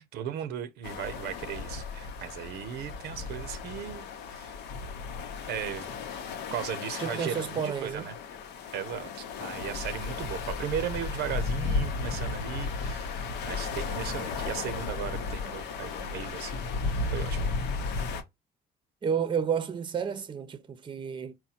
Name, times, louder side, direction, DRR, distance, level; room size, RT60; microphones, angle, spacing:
voice 1, 0.0-4.6 5.5-5.9 6.5-8.1 8.7-13.1 13.4-16.7 17.1-17.5, right 9 dB, 75° right, 0.6 m, -37 dB
sound 1, 0.8-18.2, left 4 dB, 85° left, 0.8 m, -34 dB
voice 2, 7.0-8.1 19.0-21.3, right 7 dB, 30° right, 0.6 m, -31 dB
4.2 x 2.2 x 4.1 m
cardioid pair, 110°, 17 cm